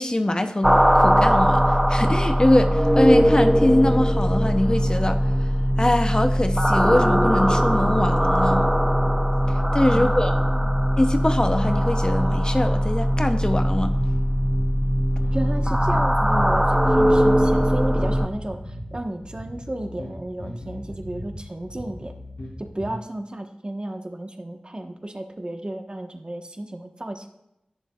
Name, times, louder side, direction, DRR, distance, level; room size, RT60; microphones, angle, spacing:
voice 1, 0.0-5.5 5.8-8.7 9.5-10.4 11.0-14.0, left 1 dB, 30° left, 0.8 m, -23 dB
sound 1, 0.6-18.3, equal, 5° right, 0.7 m, -20 dB
voice 2, 9.9-10.9 15.3-22.1 22.6-27.3, right 1 dB, 35° right, 1.2 m, -33 dB
sound 2, 13.4-23.0, left 1 dB, 80° left, 3.7 m, -38 dB
18.0 x 6.9 x 2.4 m
wide cardioid pair, 45°, 3 cm